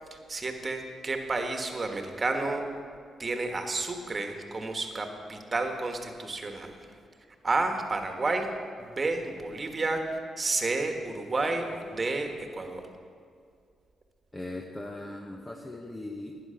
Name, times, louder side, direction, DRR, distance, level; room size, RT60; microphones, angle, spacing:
voice 1, 0.1-2.6 3.2-6.7 7.4-8.5 8.8-12.8, right 3 dB, 35° right, 4 dB, 1.5 m, -31 dB
voice 2, 14.3-16.4, left 2 dB, 20° left, 1 dB, 1.1 m, -39 dB
11.5 x 9.7 x 5.8 m, 2.2 s
cardioid pair, 75°, 0 cm